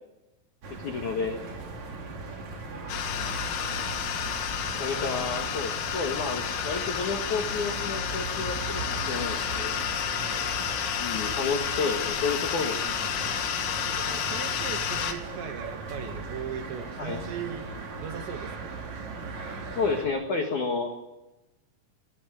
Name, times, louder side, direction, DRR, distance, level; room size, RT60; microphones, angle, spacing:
sound 1, 0.6-20.1, right 3 dB, 40° right, 3.4 m, -38 dB
voice 1, 0.8-1.4 4.8-9.8 11.0-13.3 17.0-17.3 19.7-20.9, left 4 dB, 60° left, 2 dB, 2.2 m, -31 dB
sound 2, 2.9-15.1, left 9 dB, 90° left, 4.7 m, -31 dB
voice 2, 4.7-5.5 10.2-10.5 11.4-11.6 11.9-12.0 13.9-17.7 18.0-18.8, right 8 dB, 70° right, 7 dB, 3.4 m, -39 dB
19.0 x 19.0 x 9.2 m, 1.0 s
omnidirectional pair, 5.9 m